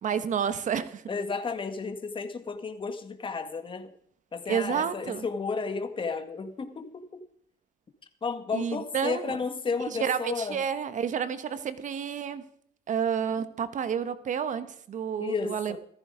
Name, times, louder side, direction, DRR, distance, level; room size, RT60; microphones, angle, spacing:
voice 1, 0.0-1.0 4.5-5.2 8.5-9.4 9.9-12.4 12.9-15.8, right 7 dB, 45° right, 13 dB, 1.3 m, -30 dB
voice 2, 1.1-3.9 4.3-7.2 8.2-10.6 15.2-15.8, left 4 dB, 30° left, 8 dB, 1.9 m, -32 dB
14.5 x 14.5 x 5.1 m, 0.67 s
cardioid pair, 110°, 17 cm